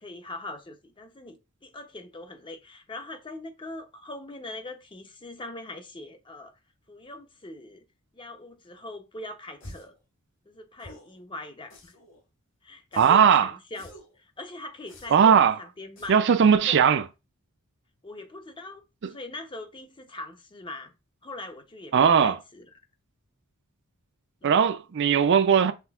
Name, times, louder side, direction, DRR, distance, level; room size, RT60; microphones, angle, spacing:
voice 1, 0.0-6.5 6.9-7.8 8.1-9.9 10.5-11.9 12.6-16.2 16.5-16.8 18.0-18.8 19.1-20.9 21.2-22.7 24.4-24.6, left 2 dB, 20° left, 0.6 m, -42 dB
sound 1, 9.6-10.0 10.8-11.2 11.7-12.2 12.9-13.4 13.7-14.2 14.9-15.4 16.0-16.3, equal, 55° left, 2.1 m, -48 dB
voice 2, 13.0-13.5 15.1-15.6 16.1-17.0 21.9-22.4 24.4-25.7, right 7 dB, 55° right, 0.4 m, -19 dB
5.8 x 3.3 x 2.3 m
head